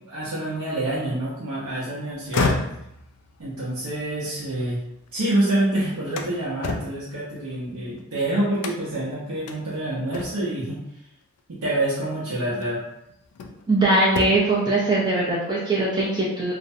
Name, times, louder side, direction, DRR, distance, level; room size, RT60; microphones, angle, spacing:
voice 1, 0.1-2.5 3.4-4.8 5.1-10.8 11.5-12.8, right 1 dB, 75° right, -8 dB, 0.6 m, -27 dB
sound 1, 2.1-5.3 5.7-8.0 8.6-9.1 9.5-9.6 10.1-10.6 11.9-12.0 12.6-13.7 14.0-14.6, left 3 dB, 85° left, 0.3 m, -31 dB
voice 2, 13.7-16.5, right 2 dB, 20° right, -6 dB, 0.4 m, -21 dB
2.4 x 2.0 x 2.6 m, 0.81 s
head